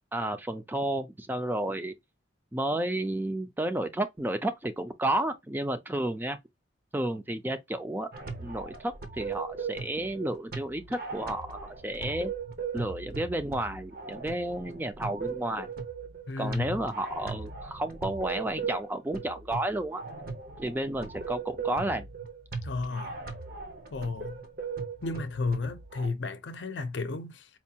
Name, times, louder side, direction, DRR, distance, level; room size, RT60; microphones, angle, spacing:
voice 1, 0.1-1.9 2.5-6.4 6.9-8.1 8.4-12.3 12.7-15.7 16.4-20.0 20.6-22.0, right 1 dB, 10° right, 0.4 m, -31 dB
sound 1, 8.1-26.1, right 5 dB, 55° right, 0.8 m, -39 dB
voice 2, 16.3-16.8 22.6-23.1 23.9-24.4 25.0-27.5, left 3 dB, 70° left, 0.6 m, -33 dB
4.4 x 2.3 x 2.8 m
head